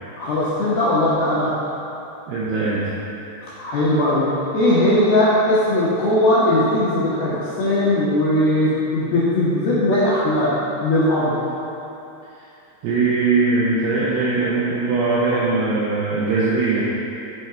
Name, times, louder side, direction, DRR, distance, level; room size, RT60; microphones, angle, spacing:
voice 1, 0.2-1.5 3.6-4.2 4.5-10.5 10.8-11.4, left 1 dB, 70° left, -10 dB, 2.3 m, -19 dB
voice 2, 2.3-2.9 12.8-16.8, right 3 dB, 80° right, -8 dB, 2.4 m, -20 dB
9.5 x 5.7 x 3.9 m, 2.8 s
omnidirectional pair, 5.7 m